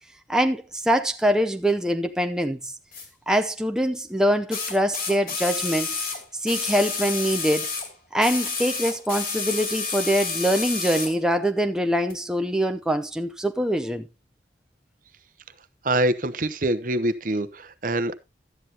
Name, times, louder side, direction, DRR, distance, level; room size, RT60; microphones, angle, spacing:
voice 1, 0.3-2.7 3.3-6.0 6.4-7.7 8.1-14.0, equal, 5° right, 0.7 m, -24 dB
sound 1, 2.9-3.1 4.5-7.9 8.2-11.2 12.1-12.2, left 4 dB, 50° left, 2.8 m, -30 dB
voice 2, 15.8-18.1, right 1 dB, 45° right, 0.8 m, -25 dB
12.5 x 9.9 x 2.9 m
head